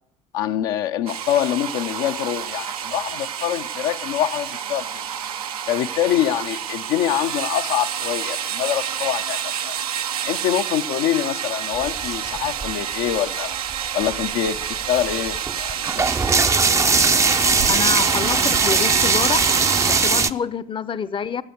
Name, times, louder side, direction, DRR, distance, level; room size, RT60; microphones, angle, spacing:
voice 1, 0.3-5.0 5.7-9.8 10.2-13.5 13.9-16.1, left 11 dB, 65° left, 0.8 m, -25 dB
sound 1, 1.1-20.3, right 9 dB, 80° right, 0.9 m, -28 dB
sound 2, 11.7-13.1 13.7-13.8 14.0-20.3, right 4 dB, 15° right, 0.6 m, -20 dB
voice 2, 17.7-19.5 19.8-21.4, left 6 dB, 25° left, 0.7 m, -27 dB
13.5 x 8.4 x 9.5 m
hypercardioid pair, 65°, 19 cm